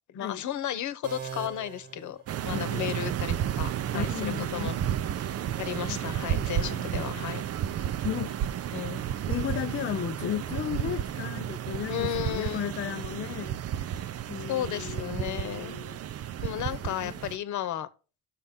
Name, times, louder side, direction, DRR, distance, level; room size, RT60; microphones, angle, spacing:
voice 1, 0.1-4.8 5.6-7.5 8.7-9.0 11.9-12.7 14.5-15.8 16.4-17.9, left 11 dB, 75° left, 1.0 m, -34 dB
sound 1, 1.0-2.9, right 7 dB, 80° right, 1.6 m, -42 dB
sound 2, 2.3-17.4, right 10 dB, 55° right, 0.6 m, -32 dB
voice 2, 2.5-3.1 3.9-4.7 5.9-6.0 6.5-7.3 8.0-8.4 9.3-13.6 14.3-16.0 16.5-17.1, left 10 dB, 45° left, 0.5 m, -35 dB
13.0 x 6.5 x 3.7 m
cardioid pair, 90°, 30 cm